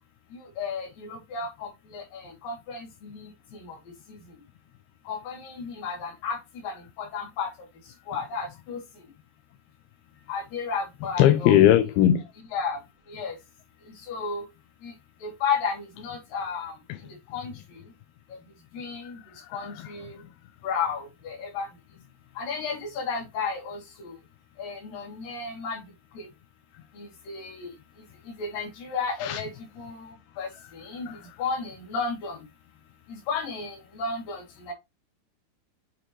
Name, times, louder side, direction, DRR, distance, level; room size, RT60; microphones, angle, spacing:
voice 1, 0.6-2.9 3.1-3.3 3.7-3.8 5.1-6.4 6.6-7.5 8.1-8.8 10.3-11.6 12.5-12.8 13.1-13.3 14.1-14.4 14.8-14.9 15.2-16.7 17.3-17.5 18.7-19.2 19.5-20.2 20.6-21.7 22.4-24.1 24.6-25.8 26.2-26.3 27.0-27.7 28.4-29.5 29.8-31.1 31.4-32.4 33.3-34.7, left 5 dB, 60° left, 3.9 m, -33 dB
voice 2, 11.2-12.2 19.6-19.7 29.2-29.4 31.1-31.2, left 11 dB, 85° left, 2.5 m, -19 dB
7.9 x 4.2 x 2.9 m
omnidirectional pair, 4.5 m